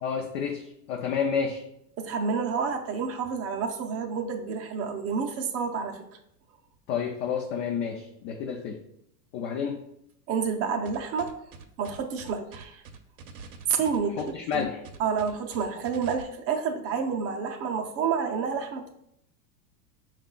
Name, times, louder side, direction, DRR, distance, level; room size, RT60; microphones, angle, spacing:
voice 1, 0.0-1.6 6.9-8.8 9.3-9.8 14.2-14.8, left 6 dB, 45° left, 1 dB, 0.6 m, -30 dB
voice 2, 2.0-6.0 10.3-11.3 11.8-12.8 13.7-14.7 15.0-18.9, right 6 dB, 30° right, 4 dB, 0.6 m, -29 dB
sound 1, 10.9-16.2, right 6 dB, 65° right, 0.7 m, -45 dB
5.3 x 2.4 x 3.8 m, 0.77 s
hypercardioid pair, 110°, 49 cm